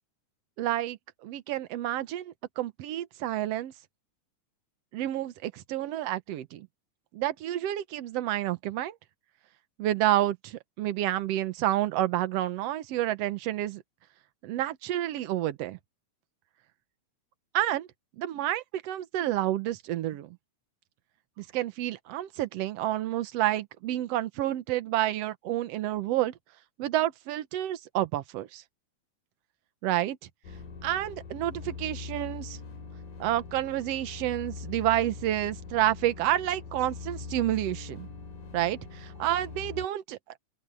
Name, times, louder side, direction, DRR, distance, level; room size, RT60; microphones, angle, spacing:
voice 1, 0.6-3.7 4.9-6.7 7.1-9.0 9.8-13.8 14.4-15.8 17.5-17.9 18.2-20.4 21.4-26.3 26.8-28.6 29.8-30.2 30.8-32.6 33.2-38.1 38.5-40.2, right 13 dB, 65° right, 1.8 m, -29 dB
sound 1, 30.4-39.9, left 5 dB, 90° left, 4.8 m, -42 dB
open air
omnidirectional pair, 3.6 m